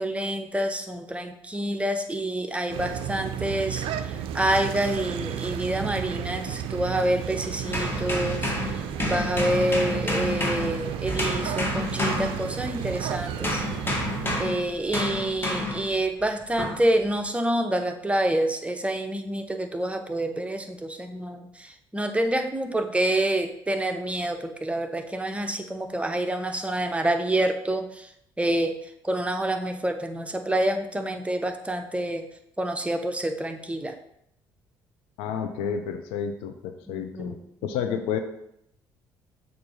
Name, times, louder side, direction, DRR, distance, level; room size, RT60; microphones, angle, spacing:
voice 1, 0.0-8.5 9.0-13.6 14.4-28.1 28.4-28.8 29.0-32.3 32.6-33.9 36.9-37.5, right 1 dB, 10° right, 5 dB, 0.7 m, -27 dB
sound 1, 2.7-14.4, right 9 dB, 60° right, 0.4 m, -33 dB
sound 2, 7.7-12.9 13.4-15.9 16.6-16.9, left 2 dB, 20° left, 1.5 m, -29 dB
voice 2, 35.2-37.4 37.6-38.2, left 7 dB, 70° left, 7 dB, 0.6 m, -30 dB
6.8 x 2.6 x 5.4 m, 0.76 s
hypercardioid pair, 50°, 10 cm